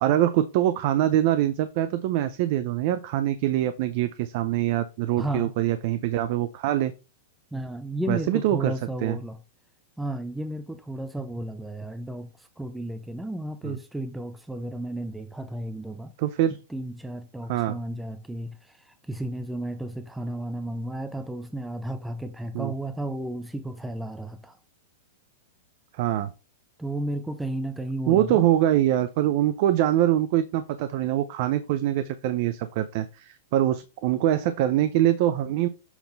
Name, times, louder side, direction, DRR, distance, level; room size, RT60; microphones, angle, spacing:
voice 1, 0.0-6.9 8.1-8.7 9.0-9.2 13.6-13.8 16.2-16.5 17.5-17.8 22.5-22.7 26.0-26.3 28.1-35.7, right 12 dB, 50° right, 0.5 m, -24 dB
voice 2, 5.2-5.5 7.5-9.4 10.0-16.1 16.5-24.6 26.8-28.5, right 1 dB, 5° right, 0.5 m, -33 dB
7.1 x 3.7 x 3.9 m
supercardioid pair, 150°, 0 cm